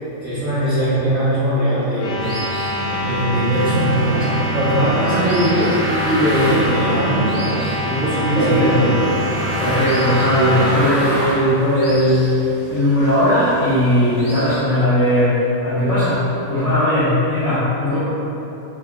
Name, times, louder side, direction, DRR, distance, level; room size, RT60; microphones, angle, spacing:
voice 1, 0.2-2.4 2.6-5.8 6.0-8.8 17.8-18.0, equal, 75° right, -14 dB, 1.1 m, -20 dB
sound 1, 1.9-10.8, right 1 dB, 85° left, 2.0 m, -25 dB
sound 2, 2.2-14.6, equal, 35° left, 0.5 m, -37 dB
sound 3, 3.5-11.3, right 1 dB, 50° right, 1.3 m, -25 dB
voice 2, 8.3-8.9 9.6-18.0, left 1 dB, 70° left, -14 dB, 1.0 m, -18 dB
4.9 x 2.5 x 2.2 m, 3.0 s
omnidirectional pair, 3.3 m